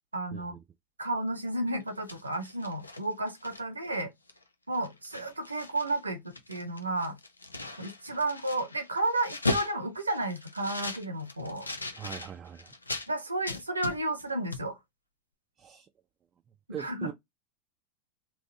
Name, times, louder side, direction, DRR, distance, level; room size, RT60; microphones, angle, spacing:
voice 1, 0.1-0.6 1.0-4.1 4.7-7.2 7.8-11.7 13.1-14.8 16.8-17.1, right 2 dB, 90° right, 1.0 m, -32 dB
sound 1, 1.8-3.9 4.3-4.4 4.7-6.0 6.3-13.1 13.5-14.3 14.5-14.7, left 2 dB, 90° left, 0.6 m, -38 dB
voice 2, 11.9-12.7 15.6-15.9 16.7-17.1, right 9 dB, 30° right, 0.5 m, -41 dB
3.6 x 2.9 x 3.9 m
figure-of-eight pair, 85°, 0 cm